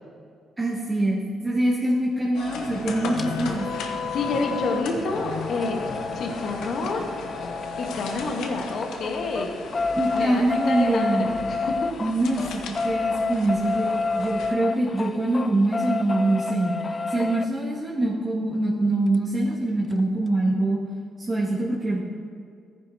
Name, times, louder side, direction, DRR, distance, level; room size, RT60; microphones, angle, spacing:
voice 1, 0.6-3.7 9.9-11.3 12.0-16.8 17.1-20.8 21.3-22.0, right 2 dB, 25° right, -8 dB, 2.1 m, -24 dB
sound 1, 2.3-14.5, left 4 dB, 85° left, 1.0 m, -34 dB
sound 2, 3.2-3.3 4.9-8.4 8.7-17.5 19.1-19.2 19.5-19.6 19.9-20.0, left 3 dB, 30° left, 0.4 m, -29 dB
voice 2, 3.8-5.8 6.1-7.0 7.8-9.5 10.1-11.8, left 3 dB, 65° left, 1 dB, 1.5 m, -29 dB
14.0 x 9.9 x 2.9 m, 2.2 s
cardioid pair, 90°, 0 cm